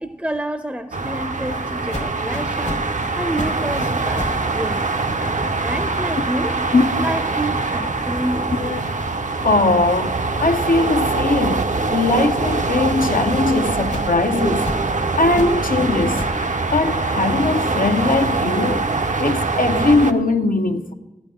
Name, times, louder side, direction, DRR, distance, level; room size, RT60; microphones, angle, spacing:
voice 1, 0.0-4.9 5.2-6.6 7.0-8.5, right 1 dB, 10° right, 0.5 m, -29 dB
sound 1, 0.9-20.1, right 3 dB, 60° right, 0.6 m, -23 dB
sound 2, 1.9-4.5 4.8-9.6 10.0-13.3 13.9-16.5, left 1 dB, 55° left, 1.1 m, -35 dB
voice 2, 9.4-11.6 11.9-14.7 15.2-16.2 16.7-18.9 19.2-20.9, left 3 dB, 80° left, 0.7 m, -20 dB
14.0 x 9.2 x 3.7 m
wide cardioid pair, 40°, 14 cm